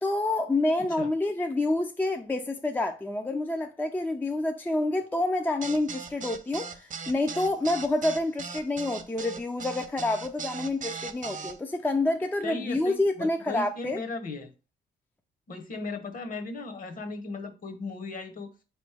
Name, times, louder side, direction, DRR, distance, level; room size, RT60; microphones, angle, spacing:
voice 1, 0.0-14.0, left 2 dB, 10° left, 0.4 m, -28 dB
voice 2, 0.8-1.1 12.4-14.5 15.5-18.5, left 3 dB, 45° left, 1.0 m, -37 dB
sound 1, 5.6-11.5, right 5 dB, 40° right, 0.6 m, -38 dB
4.0 x 3.1 x 3.3 m
cardioid pair, 90°, 20 cm